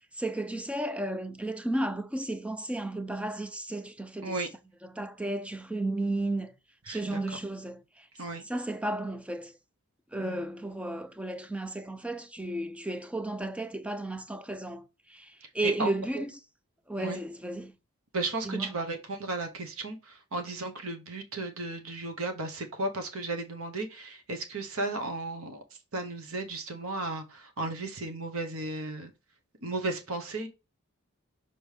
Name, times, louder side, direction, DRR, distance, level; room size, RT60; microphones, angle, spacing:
voice 1, 0.1-4.4 4.8-6.5 6.9-8.1 8.4-9.5 10.1-16.3 16.9-17.7 18.4-18.8, right 1 dB, 5° right, 0.4 m, -33 dB
voice 2, 6.9-7.2 8.2-8.4 10.2-10.4 15.4-16.2 17.0-17.2 18.1-25.6 25.9-29.1 29.6-30.5, right 2 dB, 75° right, 1.2 m, -35 dB
6.5 x 4.4 x 3.4 m
head